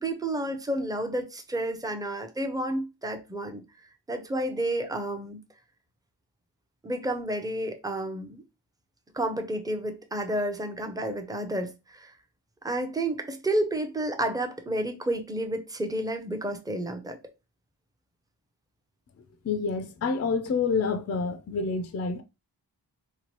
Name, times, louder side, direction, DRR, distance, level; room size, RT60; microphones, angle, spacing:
voice 1, 0.0-3.6 4.1-5.4 6.8-8.4 9.1-12.1 12.6-17.2, right 1 dB, 10° right, 0.6 m, -30 dB
voice 2, 19.4-22.2, left 5 dB, 40° left, 0.4 m, -28 dB
2.9 x 2.2 x 3.0 m
cardioid pair, 45°, 42 cm